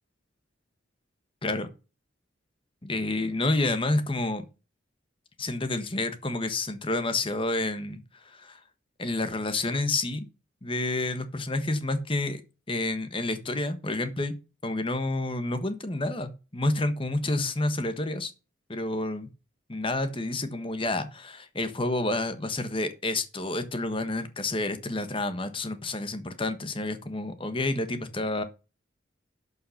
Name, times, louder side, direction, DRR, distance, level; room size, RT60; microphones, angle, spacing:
voice 1, 2.8-4.4 5.4-8.6 9.0-10.3 10.6-12.4 12.7-14.3 14.6-18.3 18.7-19.3 19.7-28.4, left 2 dB, 25° left, 1.3 m, -29 dB
11.5 x 5.7 x 5.7 m
head